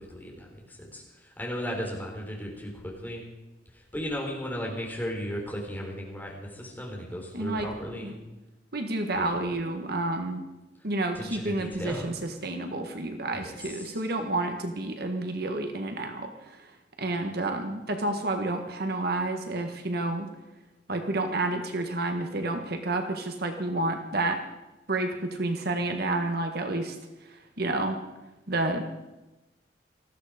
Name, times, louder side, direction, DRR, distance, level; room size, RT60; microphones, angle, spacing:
voice 1, 0.0-3.2 3.7-8.2 9.1-9.3 11.1-12.1 13.4-14.0, equal, 10° left, -1 dB, 4.0 m, -36 dB
voice 2, 7.3-7.7 8.0-8.1 8.7-10.4 10.8-20.3 20.9-24.4 24.9-27.0 27.3-28.0 28.5-28.9, right 2 dB, 55° right, 5 dB, 1.5 m, -30 dB
19.0 x 14.5 x 5.1 m, 1.0 s
head